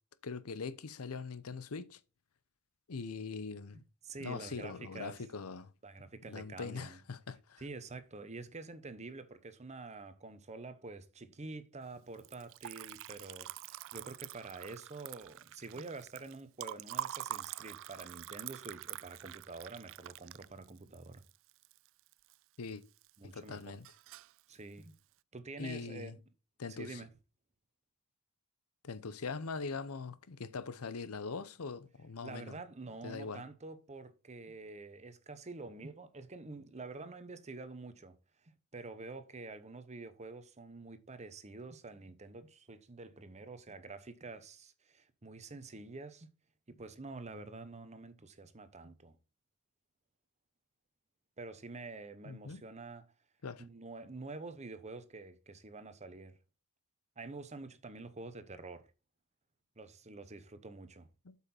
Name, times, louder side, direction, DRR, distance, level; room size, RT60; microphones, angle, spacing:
voice 1, 0.2-2.0 2.9-3.8 4.2-5.7 6.3-7.6 22.6-22.8 23.2-23.9 25.6-26.2 26.6-27.0 28.8-32.6 33.0-33.4 52.2-52.6 53.4-53.6 61.2-61.3, left 4 dB, 75° left, 0.7 m, -42 dB
voice 2, 4.0-5.2 5.8-7.0 7.6-21.2 23.2-23.8 24.5-25.0 25.3-26.2 26.7-27.1 32.2-38.2 38.7-46.3 46.7-49.2 51.4-53.0 53.6-56.4 57.2-58.9 59.8-61.1, right 3 dB, 30° right, 0.9 m, -47 dB
Liquid, 12.1-22.3 22.7-23.3 23.6-24.4, right 13 dB, 60° right, 0.3 m, -45 dB
8.1 x 5.7 x 4.3 m
head